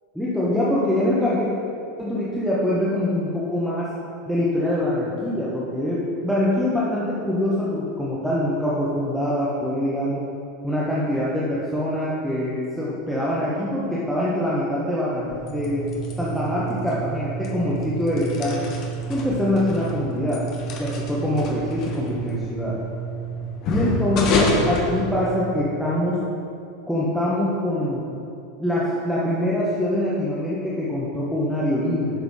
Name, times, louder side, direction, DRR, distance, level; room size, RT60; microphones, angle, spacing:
voice 1, 0.1-1.5 2.0-3.9 4.3-10.2 10.6-15.8 16.2-18.6 19.1-20.4 20.8-22.7 23.7-26.2 26.9-28.0 28.6-32.2, left 1 dB, ahead, -8 dB, 1.3 m, -24 dB
sound 1, 15.2-25.7, equal, 40° left, 1.3 m, -28 dB
10.5 x 6.6 x 3.8 m, 2.6 s
figure-of-eight pair, 85°, 0 cm